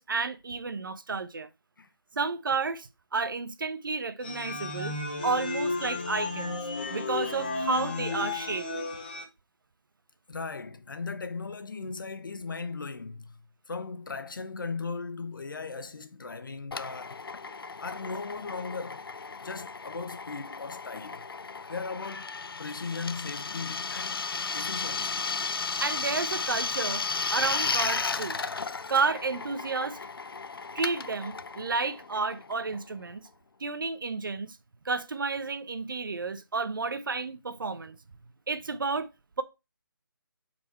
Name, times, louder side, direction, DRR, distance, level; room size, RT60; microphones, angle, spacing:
voice 1, 0.0-1.5 2.1-5.0 5.2-6.6 6.9-8.7 25.8-27.0 27.3-28.4 28.9-30.0 30.7-33.3 33.6-34.6 34.8-38.0 38.5-39.1, right 4 dB, 65° right, 1.0 m, -31 dB
sound 1, 4.2-9.2, left 3 dB, 25° left, 1.0 m, -33 dB
voice 2, 10.3-13.4 13.7-17.2 17.8-19.0 19.4-21.2 21.7-24.2 24.5-25.3, left 4 dB, 60° left, 1.1 m, -37 dB
Drill, 16.7-33.0, left 4 dB, 80° left, 0.7 m, -34 dB
7.2 x 4.5 x 4.4 m
hypercardioid pair, 175°, 12 cm